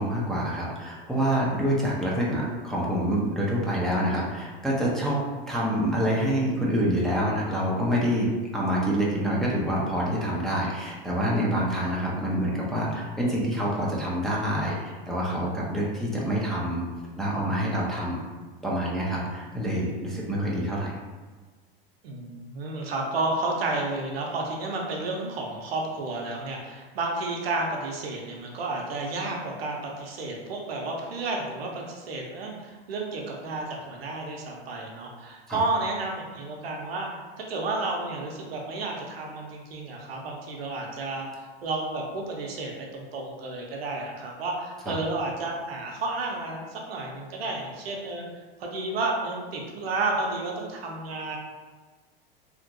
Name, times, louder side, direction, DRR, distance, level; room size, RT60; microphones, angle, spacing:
voice 1, 0.0-5.2 5.5-16.8 17.2-18.2 18.6-20.9 35.5-35.6 44.9-45.0, equal, ahead, -6 dB, 0.6 m, -26 dB
voice 2, 22.0-48.3 48.6-51.4, right 2 dB, 80° right, 0 dB, 0.7 m, -31 dB
2.8 x 2.5 x 2.6 m, 1.4 s
hypercardioid pair, 100°, 30 cm